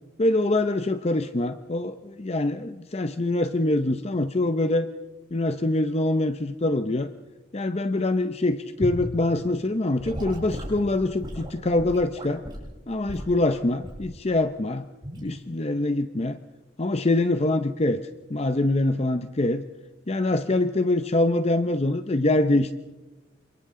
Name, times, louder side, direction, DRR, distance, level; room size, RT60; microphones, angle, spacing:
voice 1, 0.2-4.9 5.3-7.1 7.5-12.4 12.9-14.9 15.2-16.4 16.8-18.0 18.3-19.6 20.1-22.7, left 2 dB, 35° left, 9 dB, 0.7 m, -24 dB
Gurgling / Sink (filling or washing) / Liquid, 8.8-9.1 10.0-12.7 13.1-13.3 13.8-14.1 15.0-15.3, equal, 25° right, 7.6 m, -35 dB
28.5 x 27.0 x 3.8 m, 1.1 s
head